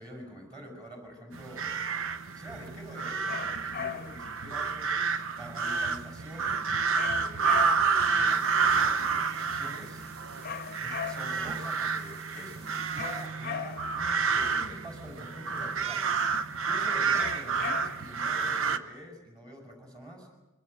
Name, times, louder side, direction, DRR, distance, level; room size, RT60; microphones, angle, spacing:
voice 1, 0.0-1.8 2.3-5.0 5.3-6.7 7.0-7.7 8.1-10.1 10.8-16.3 16.6-20.3, equal, 20° right, 1 dB, 5.9 m, -46 dB
sound 1, 1.3-18.8, right 5 dB, 65° right, 0.9 m, -29 dB
sound 2, 3.2-4.3 6.9-8.0 10.4-11.5 13.0-14.0 17.1-18.2, left 8 dB, 45° left, 0.7 m, -38 dB
sound 3, 8.3-13.3, right 2 dB, 50° right, 4.9 m, -55 dB
25.5 x 23.5 x 6.7 m, 1.0 s
head